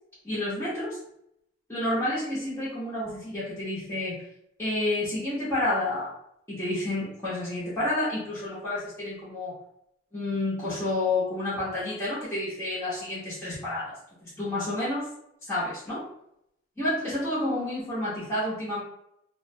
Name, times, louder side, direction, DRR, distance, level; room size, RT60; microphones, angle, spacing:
voice 1, 0.2-1.0 1.7-4.2 4.6-6.1 6.5-9.5 10.1-13.9 14.2-15.0 15.5-16.0 16.8-18.8, left 1 dB, 10° left, -12 dB, 0.8 m, -29 dB
2.4 x 2.1 x 2.6 m, 0.77 s
head